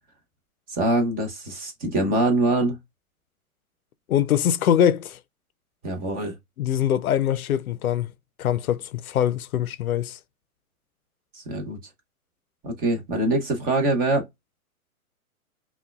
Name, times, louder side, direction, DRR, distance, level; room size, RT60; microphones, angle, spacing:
voice 1, 0.7-2.8 5.8-6.3 11.3-11.8 12.6-14.3, right 2 dB, 20° right, 1.0 m, -24 dB
voice 2, 4.1-5.2 6.6-8.1 8.4-10.2, left 10 dB, 70° left, 0.6 m, -23 dB
5.7 x 2.3 x 2.2 m
hypercardioid pair, 130°, 44 cm